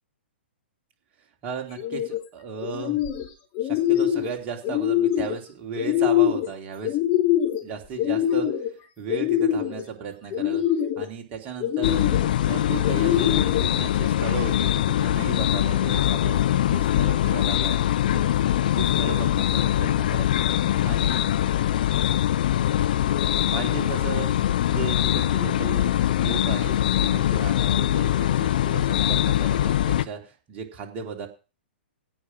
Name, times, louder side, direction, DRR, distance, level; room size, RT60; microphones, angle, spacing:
voice 1, 1.4-3.0 3.6-7.0 7.6-8.5 9.0-10.6 11.0-12.0 12.4-17.8 18.1-18.5 18.8-20.3 20.8-21.3 23.5-24.3 24.6-25.9 26.2-31.3, right 6 dB, 30° right, 3 dB, 3.1 m, -35 dB
sound 1, 1.7-2.2 2.6-3.3 3.5-4.3 4.6-5.4 5.8-6.5 6.8-7.6 8.0-8.7 9.1-9.8 10.3-11.1 11.6-12.3 12.8-13.6, left 11 dB, 30° left, 2.4 m, -23 dB
sound 2, 11.8-30.0, left 12 dB, 50° left, 0.7 m, -22 dB
16.5 x 5.5 x 6.1 m, 0.33 s
figure-of-eight pair, 115°, 6 cm